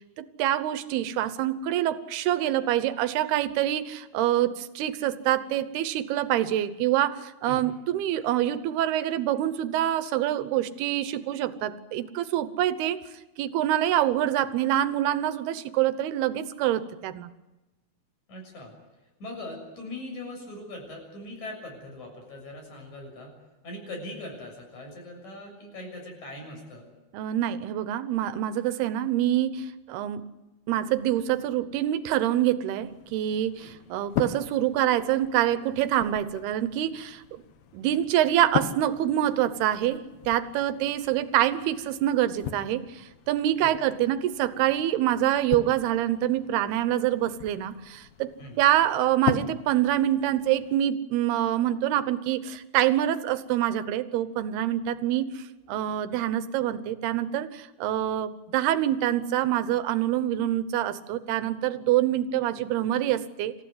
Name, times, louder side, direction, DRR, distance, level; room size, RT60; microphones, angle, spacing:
voice 1, 0.2-13.0 13.4-17.3 27.1-30.2 30.7-37.4 37.7-48.3 48.6-63.5, right 12 dB, 90° right, 13 dB, 3.0 m, -26 dB
voice 2, 18.3-18.7 19.2-23.3 23.6-26.9 33.6-33.7 43.6-43.8 48.4-48.6, left 1 dB, 50° left, 2 dB, 8.1 m, -40 dB
sound 1, 32.8-50.8, left 9 dB, 75° left, 3.0 m, -39 dB
27.0 x 15.0 x 9.5 m, 1.1 s
omnidirectional pair, 4.4 m